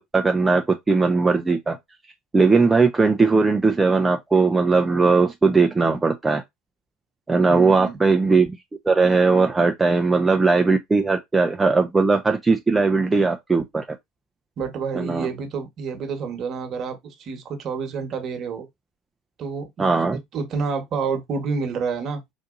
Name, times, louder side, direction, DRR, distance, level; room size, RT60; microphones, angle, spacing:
voice 1, 0.1-1.8 2.3-6.4 7.3-8.5 8.9-13.8 14.9-15.3 19.8-20.2, right 4 dB, 20° right, 0.5 m, -19 dB
voice 2, 7.4-8.0 14.6-18.7 19.4-19.9 20.3-22.2, right 5 dB, 45° right, 1.2 m, -29 dB
3.9 x 2.6 x 2.5 m
hypercardioid pair, 75°, 0 cm